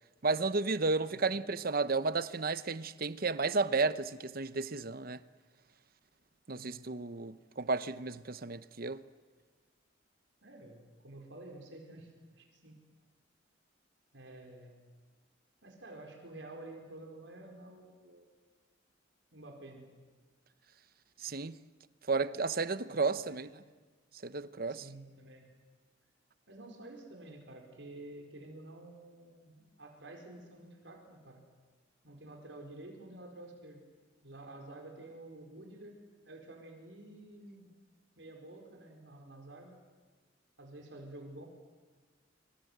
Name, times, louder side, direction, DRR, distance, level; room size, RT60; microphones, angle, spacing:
voice 1, 0.2-5.2 6.5-9.0 21.2-21.6 22.1-23.5 24.2-24.8, right 3 dB, 50° right, 0.9 m, -32 dB
voice 2, 6.5-7.0 10.4-12.8 14.1-14.9 15.6-18.3 19.3-19.9 22.9-23.5 24.7-25.5 26.5-31.4 32.0-33.8 34.2-36.0 36.2-37.8 38.2-39.8 40.6-41.5, right 2 dB, 70° right, 4.7 m, -50 dB
26.0 x 25.0 x 8.1 m
head